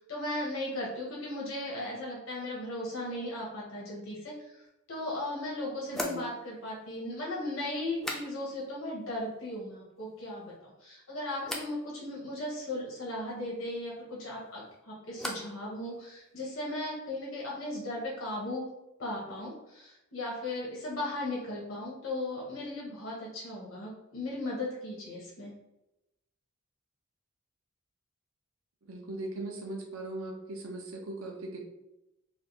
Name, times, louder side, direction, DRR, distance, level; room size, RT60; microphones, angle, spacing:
voice 1, 0.0-18.6 19.0-25.5, left 1 dB, 75° left, -5 dB, 1.0 m, -37 dB
sound 1, 4.7-4.8 5.9-8.8 9.0-9.6 10.0-10.6 11.4-11.8 14.2-15.6 15.9-16.5, equal, ahead, 0.3 m, -42 dB
voice 2, 5.9-6.2 28.9-31.6, right 2 dB, 85° right, 2 dB, 0.7 m, -39 dB
3.3 x 2.5 x 2.7 m, 0.90 s
head